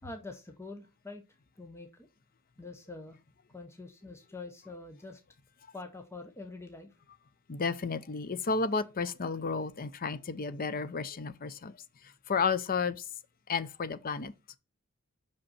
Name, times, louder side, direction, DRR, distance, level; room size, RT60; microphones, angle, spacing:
voice 1, 0.0-1.2 1.6-2.1 2.6-3.2 3.5-5.2 5.7-6.9, left 3 dB, 10° left, 0.8 m, -45 dB
voice 2, 7.5-11.7 12.3-13.0 13.5-14.3, left 5 dB, 40° left, 0.6 m, -32 dB
5.9 x 5.2 x 4.1 m
head